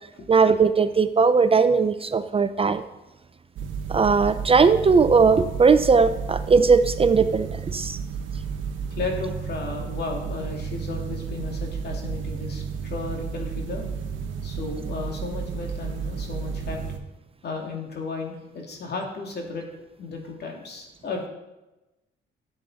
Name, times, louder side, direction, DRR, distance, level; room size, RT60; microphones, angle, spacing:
voice 1, 0.3-2.8 3.9-8.0, right 5 dB, 30° right, 11 dB, 0.5 m, -19 dB
sound 1, 3.6-17.0, right 6 dB, 75° right, 1.2 m, -32 dB
voice 2, 8.9-13.8 14.4-16.8 17.4-19.7 20.0-21.3, left 3 dB, 55° left, 1 dB, 2.4 m, -34 dB
10.5 x 7.8 x 4.1 m, 1.0 s
cardioid pair, 90°, 20 cm